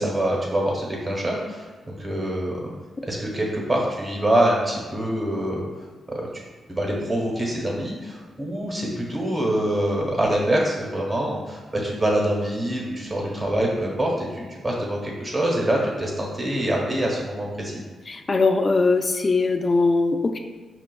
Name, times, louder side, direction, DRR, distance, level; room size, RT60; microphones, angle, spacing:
voice 1, 0.0-2.7 3.0-6.3 6.7-17.8, right 1 dB, 25° right, -2 dB, 1.0 m, -25 dB
voice 2, 18.1-20.4, left 3 dB, 35° left, 6 dB, 0.3 m, -21 dB
5.1 x 2.3 x 2.2 m, 1.4 s
cardioid pair, 85°, 0 cm